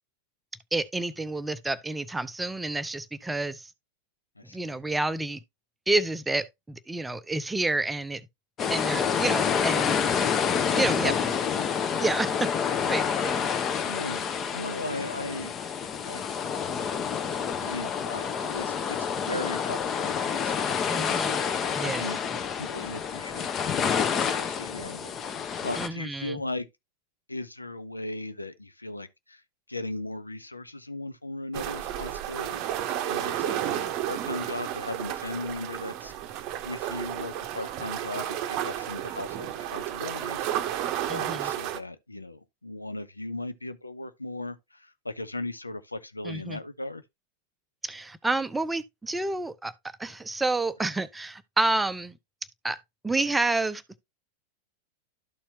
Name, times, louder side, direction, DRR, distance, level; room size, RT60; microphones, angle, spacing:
voice 1, 0.7-3.7 4.5-5.4 5.9-8.2 8.7-10.0 10.7-11.3 12.0-12.5 12.9-13.3 20.9-21.4 21.7-22.1 25.8-26.4 41.1-41.5 46.2-46.6 47.8-49.7 50.0-52.2 52.6-53.8, right 2 dB, 10° right, 0.6 m, -29 dB
voice 2, 4.4-4.7 11.0-11.2 11.5-11.7 13.9-15.5 16.0-16.2 17.6-22.2 22.5-26.7 27.3-29.4 29.7-32.6 33.1-36.4 36.6-40.5 41.1-47.0, left 2 dB, 85° left, 0.6 m, -38 dB
sound 1, 8.6-25.9, left 7 dB, 25° left, 0.7 m, -28 dB
sound 2, 31.5-41.8, right 11 dB, 40° right, 0.7 m, -32 dB
12.5 x 4.3 x 2.7 m
figure-of-eight pair, 90°, 0 cm